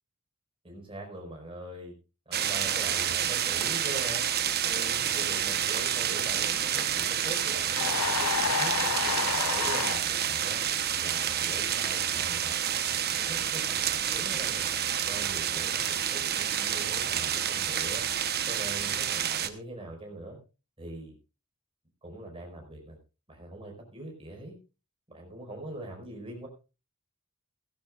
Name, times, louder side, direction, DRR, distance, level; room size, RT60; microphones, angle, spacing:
voice 1, 0.6-1.9 2.3-4.3 4.6-10.6 11.0-12.8 13.1-14.7 15.1-18.0 18.5-20.4 20.8-21.1 22.0-23.0 23.3-24.6 25.1-26.5, right 1 dB, 25° right, 0 dB, 5.2 m, -42 dB
sound 1, 2.3-19.5, right 9 dB, 45° right, 1.1 m, -29 dB
sound 2, 7.8-10.0, left 6 dB, 75° left, 0.8 m, -29 dB
16.5 x 16.0 x 2.5 m, 0.31 s
head